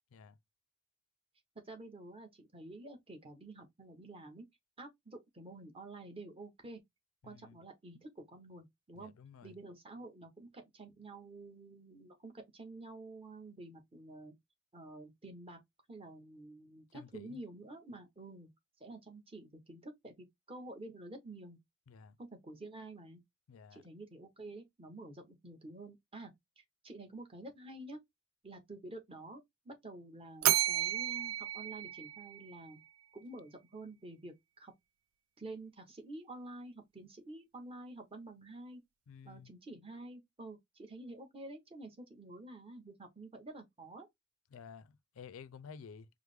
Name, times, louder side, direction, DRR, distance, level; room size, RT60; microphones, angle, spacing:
voice 1, 1.6-4.5 4.8-6.8 7.2-9.1 9.4-14.3 14.7-15.6 15.9-18.5 18.8-21.6 22.2-23.2 23.7-28.0 28.4-32.8 33.1-34.7 35.4-38.8 39.2-44.1, right 2 dB, 25° right, 0.9 m, -49 dB
voice 2, 7.2-7.6 8.9-9.5 16.9-17.4 21.9-22.2 23.5-23.8 39.1-39.5 44.5-46.1, left 6 dB, 80° left, 0.4 m, -52 dB
Bell, 30.4-32.7, right 13 dB, 90° right, 0.3 m, -32 dB
4.7 x 2.0 x 3.3 m
head